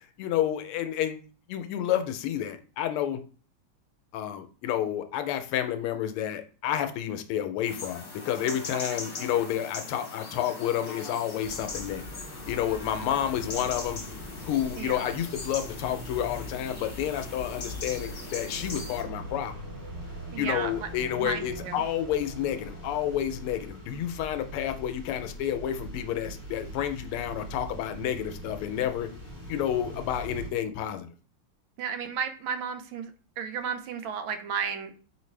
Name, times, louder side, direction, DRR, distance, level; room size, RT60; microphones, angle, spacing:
voice 1, 0.2-1.2 1.5-3.2 4.1-12.0 12.5-14.0 14.4-19.5 20.4-29.1 29.5-31.1, left 10 dB, 85° left, 1.5 m, -30 dB
sound 1, 7.6-19.0, left 3 dB, 45° left, 1.2 m, -41 dB
sound 2, 11.4-30.5, equal, 15° right, 0.9 m, -42 dB
voice 2, 14.8-15.1 20.3-20.7 21.2-21.8 31.8-33.1 33.4-34.9, right 7 dB, 75° right, 1.3 m, -33 dB
4.6 x 3.2 x 3.2 m
omnidirectional pair, 2.4 m